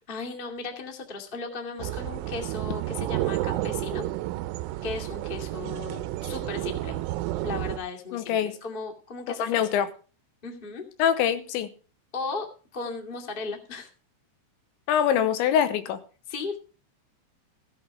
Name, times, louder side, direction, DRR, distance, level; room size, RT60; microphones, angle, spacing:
voice 1, 0.1-4.0 4.8-7.0 7.4-9.7 10.4-10.8 12.1-12.5 12.7-13.9 16.3-16.6, left 4 dB, 35° left, 0.8 m, -36 dB
sound 1, 1.8-7.8, right 15 dB, 85° right, 3.2 m, -31 dB
voice 2, 8.1-8.5 9.4-9.9 11.0-11.7 14.9-16.0, left 9 dB, 80° left, 3.1 m, -24 dB
16.5 x 8.2 x 4.8 m
omnidirectional pair, 5.5 m